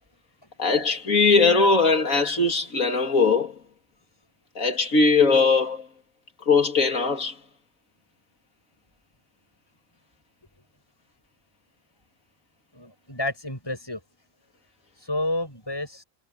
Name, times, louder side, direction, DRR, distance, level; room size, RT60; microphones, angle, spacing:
voice 1, 0.6-3.5 4.6-5.9 6.5-7.3, left 4 dB, 75° left, 3.1 m, -20 dB
voice 2, 12.7-14.0 15.0-16.0, left 1 dB, 15° left, 6.8 m, -30 dB
omnidirectional pair, 1.4 m